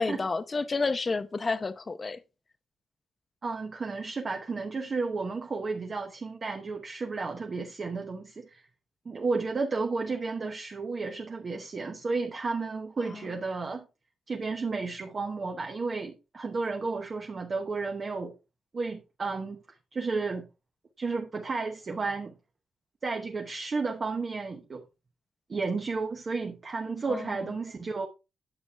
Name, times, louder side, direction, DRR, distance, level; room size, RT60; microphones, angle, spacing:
voice 1, 0.0-2.2 13.1-13.3 27.1-27.3, left 3 dB, 30° left, 0.8 m, -30 dB
voice 2, 3.4-8.6 9.0-13.8 14.3-18.3 18.7-19.6 19.9-20.5 21.0-22.3 23.0-24.8 25.5-28.1, right 4 dB, 35° right, 1.0 m, -32 dB
9.4 x 7.1 x 3.4 m
cardioid pair, 135°, 0 cm